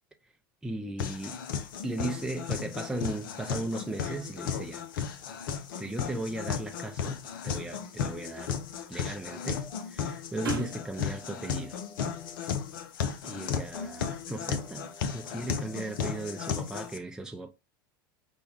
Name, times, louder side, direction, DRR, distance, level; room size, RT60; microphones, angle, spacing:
voice 1, 0.6-1.4 1.8-4.8 5.8-8.6 8.9-11.8 13.2-17.5, right 2 dB, 5° right, 0.5 m, -37 dB
sound 1, 1.0-17.0, left 7 dB, 70° left, 0.6 m, -35 dB
sound 2, 2.2-10.9, right 5 dB, 85° right, 0.7 m, -46 dB
sound 3, 9.2-9.8 10.4-12.4 13.4-14.0 14.5-16.5, left 2 dB, 20° left, 0.9 m, -52 dB
5.2 x 2.3 x 3.4 m
hypercardioid pair, 85°, 11 cm